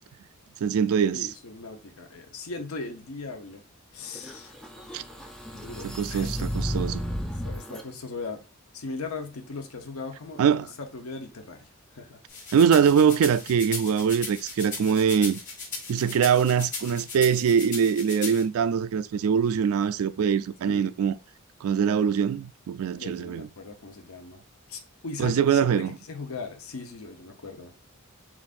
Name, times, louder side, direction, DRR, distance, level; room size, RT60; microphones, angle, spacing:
voice 1, 0.6-1.3 4.9-5.0 5.8-7.0 10.4-10.7 12.5-15.4 15.9-21.1 21.6-23.5 25.2-25.9, right 7 dB, 75° right, 0.3 m, -23 dB
voice 2, 1.1-3.6 3.9-4.6 5.5-6.4 7.4-8.4 8.7-12.2 20.7-20.9 22.9-24.4 24.7-27.7, left 3 dB, 80° left, 0.9 m, -39 dB
sound 1, 4.1-7.8, equal, 5° left, 0.5 m, -33 dB
sound 2, 12.3-18.4, left 4 dB, 40° left, 1.9 m, -37 dB
7.1 x 2.5 x 2.5 m
head